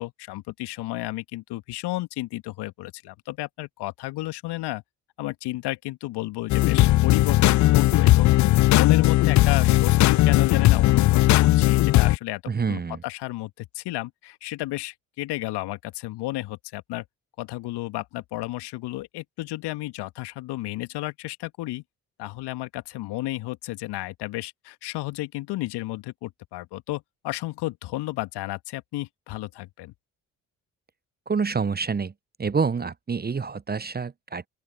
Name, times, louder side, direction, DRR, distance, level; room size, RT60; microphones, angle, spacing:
voice 1, 0.0-4.8 5.2-8.3 8.7-12.4 12.7-17.0 17.4-21.8 22.2-29.9, left 18 dB, 65° left, 1.9 m, -32 dB
sound 1, 6.5-12.2, left 16 dB, 45° left, 0.5 m, -18 dB
voice 2, 12.5-13.0 31.3-32.1 32.4-34.5, right 5 dB, 20° right, 0.9 m, -27 dB
open air
figure-of-eight pair, 40°, 43 cm